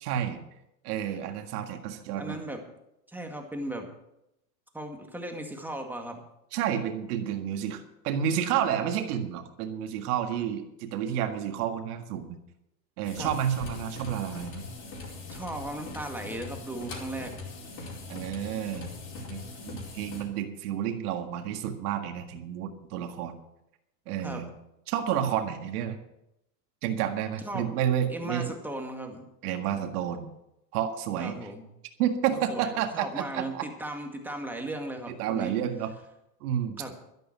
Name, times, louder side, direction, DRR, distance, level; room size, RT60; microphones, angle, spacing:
voice 1, 0.0-0.4 0.8-2.4 6.5-12.4 13.0-14.6 18.1-18.9 19.3-23.4 24.1-24.5 24.9-26.0 26.8-28.6 29.4-30.3 30.7-31.4 32.0-33.7 35.1-35.9 36.4-36.8, right 9 dB, 65° right, 5 dB, 1.9 m, -30 dB
voice 2, 2.2-2.6 3.1-3.9 4.7-6.2 13.2-13.3 15.3-17.3 24.2-24.4 27.4-27.7 28.1-29.3 31.2-31.7 32.3-35.5 36.8-36.9, right 1 dB, 5° right, 3 dB, 2.1 m, -37 dB
sound 1, 13.0-20.3, left 3 dB, 40° left, 4.8 m, -41 dB
12.0 x 11.5 x 6.1 m, 0.84 s
supercardioid pair, 125°, 48 cm